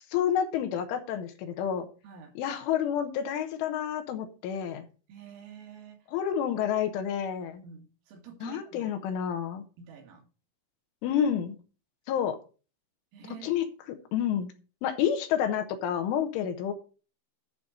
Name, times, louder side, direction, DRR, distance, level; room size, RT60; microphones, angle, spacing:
voice 1, 0.1-1.9 2.4-4.9 6.1-7.6 8.4-9.6 11.0-11.6 12.1-12.4 13.4-14.5 14.8-16.7, left 9 dB, 80° left, 7 dB, 3.5 m, -29 dB
voice 2, 5.1-6.1 7.6-9.0 9.8-10.2 13.1-13.5, right 8 dB, 85° right, 2 dB, 4.6 m, -47 dB
11.5 x 4.0 x 7.4 m, 0.36 s
omnidirectional pair, 5.7 m